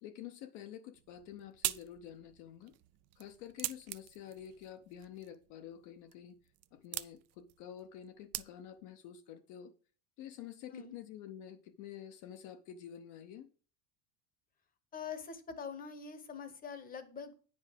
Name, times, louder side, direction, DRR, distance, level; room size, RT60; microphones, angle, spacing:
voice 1, 0.0-2.7 3.2-6.4 6.7-9.7 10.2-13.5, left 10 dB, 55° left, 0.8 m, -49 dB
sound 1, 0.9-8.9, right 17 dB, 45° right, 0.4 m, -44 dB
voice 2, 14.9-17.3, left 6 dB, 25° left, 1.0 m, -44 dB
9.5 x 5.3 x 5.1 m
cardioid pair, 160°, 37 cm